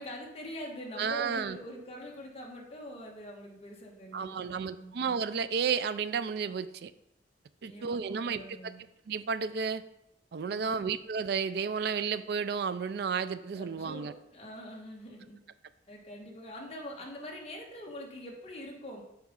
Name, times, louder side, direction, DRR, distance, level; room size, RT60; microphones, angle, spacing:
voice 1, 0.0-4.9 7.6-8.8 10.4-10.9 13.5-15.4 15.9-19.0, equal, 35° left, 0 dB, 1.3 m, -44 dB
voice 2, 1.0-1.6 4.1-6.9 7.6-8.7 9.1-9.8 10.3-14.1, right 6 dB, 65° right, 13 dB, 0.4 m, -32 dB
7.1 x 5.0 x 3.7 m, 0.84 s
head